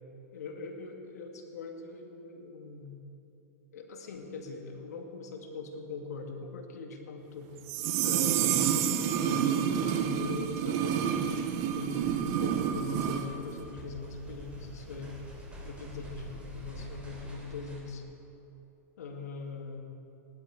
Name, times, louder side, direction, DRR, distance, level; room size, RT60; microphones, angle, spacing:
voice 1, 0.3-3.0 3.7-7.5 8.0-11.2 11.7-15.2 15.6-18.0 19.0-19.8, left 4 dB, 85° left, 3 dB, 2.0 m, -41 dB
Chime, 7.7-9.7, right 14 dB, 60° right, 0.7 m, -30 dB
sound 1, 7.8-13.3 13.6-13.7, right 8 dB, 45° right, 1.0 m, -30 dB
sound 2, 9.3-17.8, right 1 dB, 15° right, 3.5 m, -48 dB
17.5 x 11.5 x 4.9 m, 2.8 s
hypercardioid pair, 130°, 8 cm